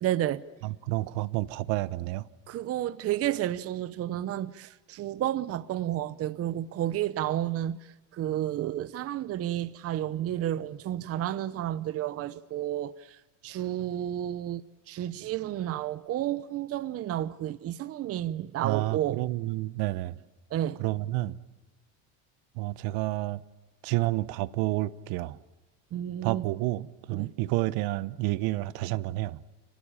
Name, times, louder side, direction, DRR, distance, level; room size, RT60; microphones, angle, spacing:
voice 1, 0.0-0.4 2.5-7.8 8.1-12.9 13.4-19.2 20.5-20.8 25.9-26.5 27.1-27.3, right 12 dB, 40° right, 0.8 m, -31 dB
voice 2, 0.6-2.2 18.6-20.2 20.8-21.4 22.6-23.4 23.8-25.4 26.2-29.4, right 18 dB, 70° right, 1.1 m, -30 dB
29.0 x 20.0 x 8.8 m
cardioid pair, 135°, 38 cm